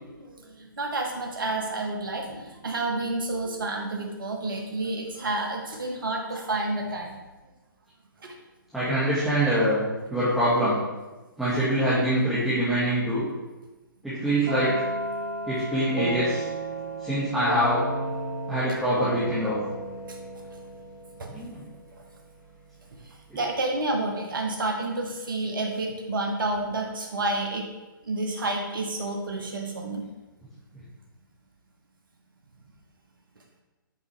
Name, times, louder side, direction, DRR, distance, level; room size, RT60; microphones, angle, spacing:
voice 1, 0.0-7.1 8.2-8.3 21.2-21.3 23.3-27.7 28.1-30.0, right 2 dB, 65° right, 1 dB, 1.1 m, -30 dB
voice 2, 8.7-9.8 10.1-10.8 11.4-13.2 14.0-14.8 15.4-16.5 17.0-17.8 18.5-19.6 21.3-21.6 23.3-23.4, equal, ahead, -12 dB, 1.6 m, -24 dB
sound 1, 14.5-22.2, right 2 dB, 45° right, 2.1 m, -33 dB
8.1 x 4.8 x 3.3 m, 1.1 s
figure-of-eight pair, 130°, 12 cm